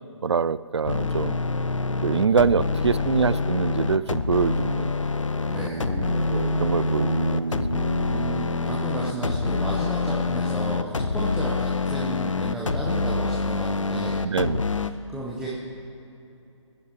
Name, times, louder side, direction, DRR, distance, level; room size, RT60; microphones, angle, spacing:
voice 1, 0.2-1.4 2.0-4.9 6.3-7.4 14.2-14.6, right 6 dB, 60° right, 18 dB, 0.4 m, -24 dB
sound 1, 0.8-14.9, left 3 dB, 75° left, 0.6 m, -26 dB
voice 2, 2.2-2.9 5.5-5.9 8.1-14.2 14.6-15.5, right 1 dB, ahead, -5 dB, 0.6 m, -34 dB
Guitar, 5.7-12.2, right 4 dB, 85° right, 0.9 m, -35 dB
21.0 x 10.0 x 4.5 m, 2.9 s
figure-of-eight pair, 145°, 16 cm